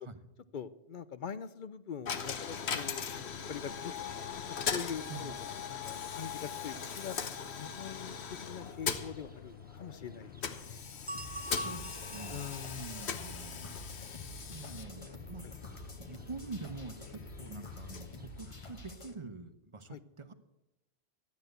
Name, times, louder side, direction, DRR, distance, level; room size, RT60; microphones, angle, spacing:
voice 1, 0.5-5.3 5.7-7.2 7.6-8.2 8.5-10.3 10.6-10.8 12.3-12.9 14.1-14.2 14.6-14.7 15.4-15.5 19.9-20.0, left 7 dB, 55° left, 14 dB, 0.7 m, -43 dB
Coin (dropping), 2.1-19.0, left 6 dB, 90° left, 1.2 m, -40 dB
sound 1, 8.1-19.0, right 1 dB, 15° right, 0.4 m, -50 dB
sound 2, 11.1-19.1, left 2 dB, 30° left, 1.1 m, -49 dB
voice 2, 11.4-13.8 14.5-15.5 16.0-20.3, right 3 dB, 30° right, 11 dB, 0.8 m, -46 dB
13.0 x 9.4 x 7.9 m, 0.92 s
omnidirectional pair, 1.1 m